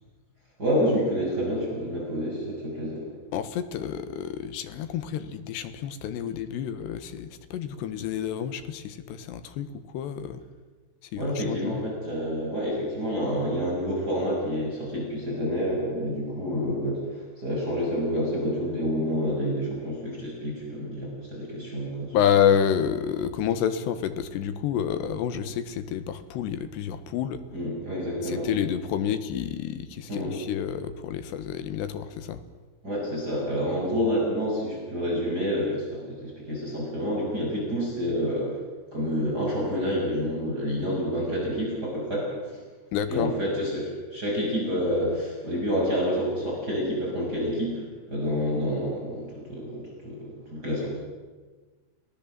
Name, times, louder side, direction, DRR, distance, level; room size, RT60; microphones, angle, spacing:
voice 1, 0.6-3.0 11.2-22.1 27.5-28.5 30.1-30.3 32.8-38.5 38.9-42.6 43.1-50.9, equal, 20° right, -3 dB, 6.7 m, -28 dB
voice 2, 3.3-10.4 11.1-11.8 22.1-27.4 28.2-32.4 42.9-43.4, left 8 dB, 70° left, 10 dB, 3.2 m, -29 dB
30.0 x 18.0 x 7.6 m, 1.4 s
omnidirectional pair, 5.6 m